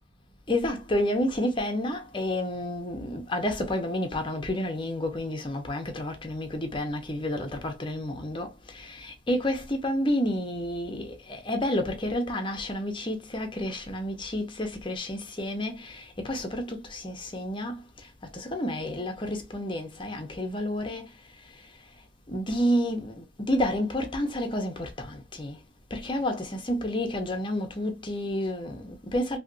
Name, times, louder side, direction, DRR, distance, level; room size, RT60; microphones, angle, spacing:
voice 1, 0.5-21.1 22.3-25.6 25.9-29.4, left 1 dB, 25° left, 0.8 m, -30 dB
3.2 x 2.9 x 2.7 m
head